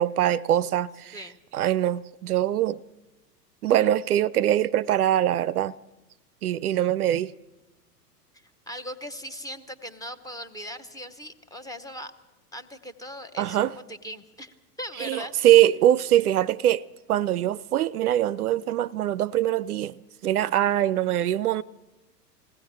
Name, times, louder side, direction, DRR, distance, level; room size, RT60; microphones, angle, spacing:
voice 1, 0.0-1.2 1.5-2.8 3.6-5.7 6.4-7.3 13.4-13.7 15.0-21.6, right 12 dB, 65° right, 0.6 m, -23 dB
voice 2, 8.3-12.1 12.5-15.3, equal, 5° left, 0.9 m, -39 dB
20.5 x 16.5 x 7.5 m
figure-of-eight pair, 95°, 48 cm